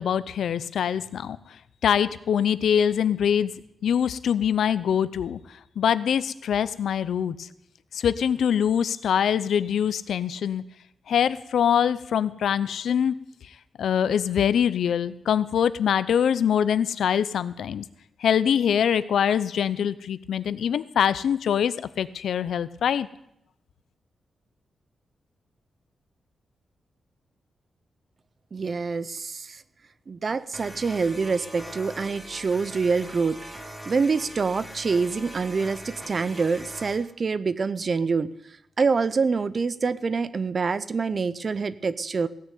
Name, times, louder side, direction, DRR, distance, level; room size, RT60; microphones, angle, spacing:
voice 1, 0.0-1.4 1.8-3.5 3.8-5.4 5.8-7.5 7.9-10.6 11.1-13.1 13.8-17.8 18.2-23.1, left 8 dB, 85° left, 16 dB, 0.6 m, -24 dB
voice 2, 28.5-29.6 30.1-33.4 33.9-38.3 38.8-42.3, right 4 dB, 35° right, 16 dB, 0.5 m, -26 dB
sound 1, 30.5-37.0, right 1 dB, 10° right, 1.8 m, -41 dB
16.5 x 6.4 x 9.2 m, 0.76 s
wide cardioid pair, 150°, 0 cm